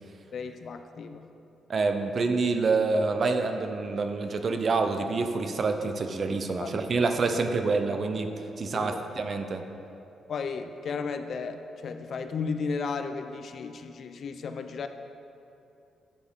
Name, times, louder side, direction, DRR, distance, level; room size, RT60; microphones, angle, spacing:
voice 1, 0.3-1.3 6.6-6.7 8.7-9.0 10.3-14.9, left 5 dB, 50° left, 8 dB, 0.4 m, -34 dB
voice 2, 1.7-9.6, right 3 dB, 35° right, 6 dB, 0.6 m, -27 dB
11.5 x 6.9 x 3.6 m, 2.8 s
cardioid pair, 150°, 0 cm